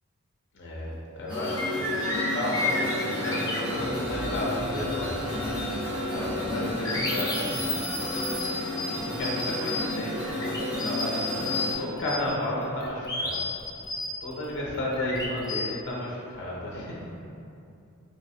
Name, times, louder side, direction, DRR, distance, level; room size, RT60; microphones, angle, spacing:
voice 1, 0.5-5.8 6.1-7.9 8.9-13.4 14.2-17.2, left 1 dB, 55° left, -4 dB, 0.6 m, -33 dB
sound 1, 0.9-1.0 1.3-5.8 6.1-11.7 12.0-15.6, left 2 dB, 15° left, 0.4 m, -33 dB
sound 2, 1.3-11.7, left 1 dB, 5° right, 1.0 m, -32 dB
3.5 x 3.2 x 2.7 m, 2.5 s
head